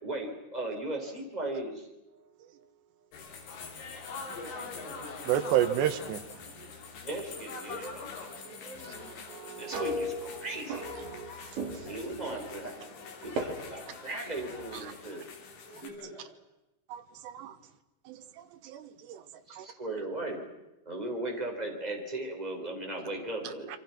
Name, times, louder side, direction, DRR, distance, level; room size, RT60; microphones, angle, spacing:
voice 1, 0.0-1.9 7.0-9.1 9.6-10.9 11.8-13.0 13.2-15.2 19.5-20.4 20.9-23.7, right 2 dB, 10° right, 1 dB, 3.8 m, -37 dB
sound 1, 3.1-15.9, left 4 dB, 90° left, 5.5 m, -44 dB
voice 2, 4.3-5.6 11.9-12.5 15.7-16.2, left 1 dB, 50° left, -2 dB, 9.6 m, -46 dB
voice 3, 5.3-6.2 9.0-9.8 11.1-11.3 15.7-15.8 16.9-17.0 17.3-17.5 18.1-18.2 18.6-19.2 19.6-19.7, right 11 dB, 80° right, 8 dB, 3.5 m, -31 dB
sound 2, 9.7-11.3 11.6-12.0 13.4-13.5, equal, 65° right, 5.7 m, -35 dB
28.0 x 24.5 x 6.1 m, 0.96 s
omnidirectional pair, 5.0 m